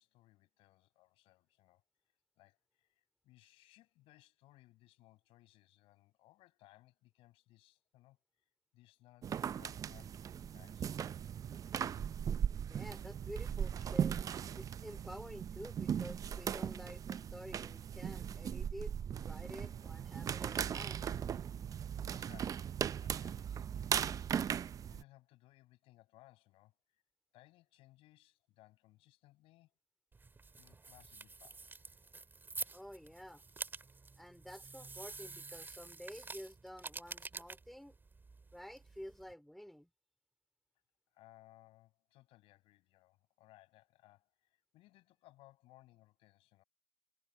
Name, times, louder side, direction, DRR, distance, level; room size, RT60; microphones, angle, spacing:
voice 1, 0.0-1.8 2.4-8.2 8.7-11.0 21.9-27.0 27.3-29.7 30.5-31.7 41.1-46.6, left 18 dB, 80° left, 7.6 m, -64 dB
sound 1, 9.2-25.0, right 8 dB, 40° right, 0.5 m, -38 dB
voice 2, 12.5-14.2 14.5-21.0 32.7-33.4 34.2-38.0 38.5-39.9, equal, ahead, 4.3 m, -50 dB
sound 2, 30.1-39.3, right 3 dB, 20° right, 3.6 m, -48 dB
cardioid pair, 110°, 9 cm